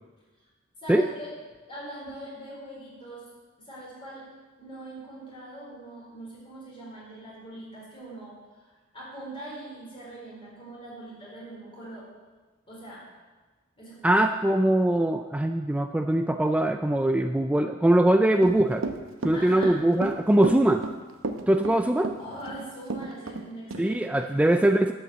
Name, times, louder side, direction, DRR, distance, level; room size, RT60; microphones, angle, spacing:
voice 1, 0.8-1.3 1.7-3.2 3.6-4.2 4.6-12.0 12.7-13.0 13.8-14.4 19.3-19.7 22.2-24.4, right 1 dB, 25° left, -6 dB, 4.3 m, -42 dB
voice 2, 14.0-18.8 19.2-20.8 21.5-22.1 23.8-24.9, right 1 dB, 5° right, 6 dB, 0.3 m, -22 dB
Run / Walk footsteps, 18.3-23.4 23.7-23.8, right 2 dB, 70° right, 0.8 m, -32 dB
12.0 x 5.6 x 7.3 m, 1.3 s
head